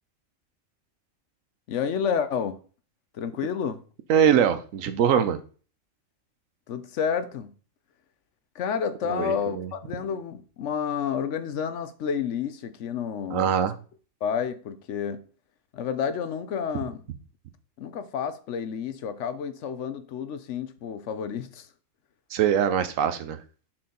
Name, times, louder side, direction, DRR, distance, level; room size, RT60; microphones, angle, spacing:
voice 1, 1.7-2.6 3.1-3.8 6.7-7.5 8.5-13.5 14.2-15.2 15.7-17.0 17.8-21.7, left 7 dB, 70° left, 1.0 m, -30 dB
voice 2, 4.1-5.4 9.1-9.7 13.3-13.7 22.3-23.4, right 8 dB, 85° right, 1.1 m, -23 dB
6.2 x 4.3 x 3.7 m
omnidirectional pair, 1.3 m